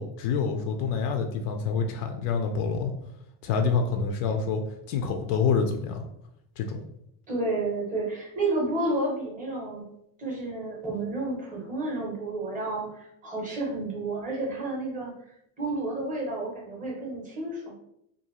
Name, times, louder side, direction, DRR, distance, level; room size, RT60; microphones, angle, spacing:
voice 1, 0.0-2.9 3.4-4.6 4.9-6.1 6.6-6.8, left 5 dB, 85° left, 4 dB, 0.5 m, -27 dB
voice 2, 7.3-9.8 10.2-17.7, right 2 dB, 20° right, -3 dB, 0.5 m, -31 dB
2.5 x 2.4 x 2.8 m, 0.76 s
cardioid pair, 175°, 47 cm